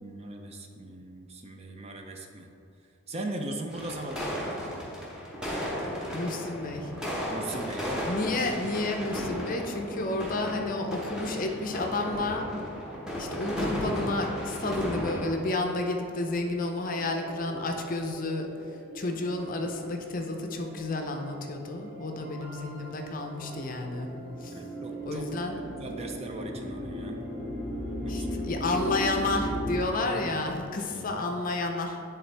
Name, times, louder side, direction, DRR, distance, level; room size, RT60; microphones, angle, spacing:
voice 1, 0.0-2.5 3.1-4.5 7.3-8.1 24.5-25.3 25.8-27.2 28.0-28.7 29.9-31.3, right 2 dB, 30° right, 3 dB, 0.5 m, -39 dB
sound 1, 3.7-15.3, equal, 5° right, 1.1 m, -34 dB
voice 2, 6.1-6.9 8.1-12.5 13.2-18.5 18.9-24.1 24.4-24.5 25.1-25.6 28.1-32.0, left 2 dB, 40° left, 3 dB, 0.5 m, -31 dB
sound 2, 13.1-29.1, right 2 dB, 55° right, 1.3 m, -46 dB
sound 3, 22.9-29.8, equal, 15° left, 1.5 m, -36 dB
10.5 x 3.7 x 3.3 m, 2.6 s
head